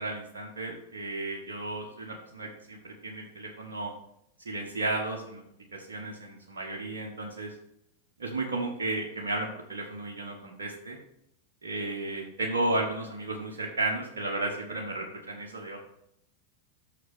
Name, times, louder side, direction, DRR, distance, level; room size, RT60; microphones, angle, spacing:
voice 1, 0.0-3.9 4.4-5.4 5.7-7.5 8.2-11.0 11.6-15.8, right 2 dB, 65° right, -1 dB, 1.2 m, -33 dB
6.3 x 6.1 x 6.1 m, 0.77 s
figure-of-eight pair, 90°, 0 cm